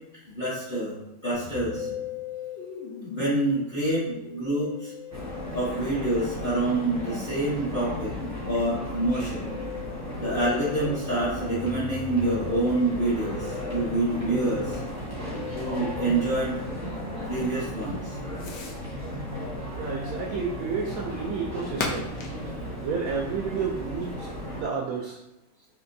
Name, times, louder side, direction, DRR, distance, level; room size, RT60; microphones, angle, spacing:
voice 1, 0.3-0.9 1.2-1.9 3.0-4.9 5.5-8.1 8.4-9.4 10.2-14.8 15.5-17.0 17.3-18.1, right 2 dB, 40° left, -8 dB, 0.8 m, -27 dB
Musical instrument, 1.3-18.9, left 7 dB, 85° left, 1.3 m, -41 dB
sound 1, 5.1-24.6, equal, 15° right, 0.5 m, -35 dB
Fireworks, 9.7-24.3, left 3 dB, 70° left, 1.0 m, -44 dB
voice 2, 19.7-22.1 22.8-25.2, right 5 dB, 80° right, -1 dB, 0.8 m, -31 dB
4.3 x 2.8 x 2.6 m, 0.91 s
omnidirectional pair, 2.0 m